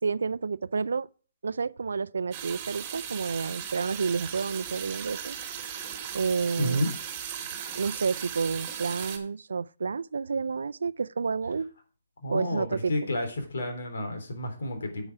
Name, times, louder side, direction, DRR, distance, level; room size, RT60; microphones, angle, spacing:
voice 1, 0.0-1.1 1.4-5.4 6.1-6.8 7.8-11.7 12.3-13.1, right 5 dB, 80° right, 0.4 m, -30 dB
sound 1, 2.3-9.2, right 9 dB, 25° right, 2.4 m, -37 dB
voice 2, 6.6-6.9 12.2-15.1, left 1 dB, 70° left, 3.6 m, -30 dB
8.7 x 8.2 x 4.8 m
hypercardioid pair, 145°, 0 cm